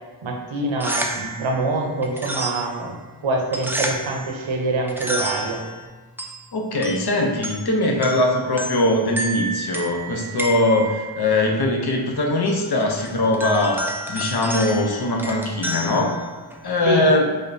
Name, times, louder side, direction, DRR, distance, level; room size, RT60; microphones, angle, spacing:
voice 1, 0.2-3.0 3.2-5.6 16.9-17.0, right 2 dB, 85° right, 1 dB, 0.7 m, -25 dB
sound 1, 0.6-16.8, right 1 dB, 5° right, 0.3 m, -32 dB
voice 2, 6.5-16.2 16.6-17.3, left 1 dB, 55° left, 1 dB, 0.7 m, -21 dB
4.9 x 2.1 x 2.6 m, 1.4 s
wide cardioid pair, 45°, 45 cm